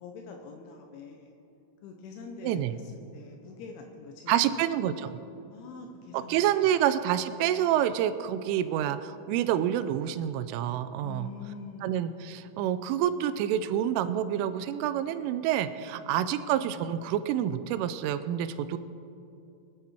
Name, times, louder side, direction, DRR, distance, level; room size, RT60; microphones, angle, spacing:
voice 1, 0.0-1.3 1.8-4.6 5.5-6.8 11.0-12.0 15.9-16.1, left 4 dB, 80° left, 2 dB, 3.4 m, -45 dB
voice 2, 4.3-5.2 6.1-11.3 11.8-18.8, right 10 dB, 85° right, 12 dB, 3.2 m, -28 dB
25.0 x 10.0 x 4.4 m, 2.7 s
omnidirectional pair, 5.6 m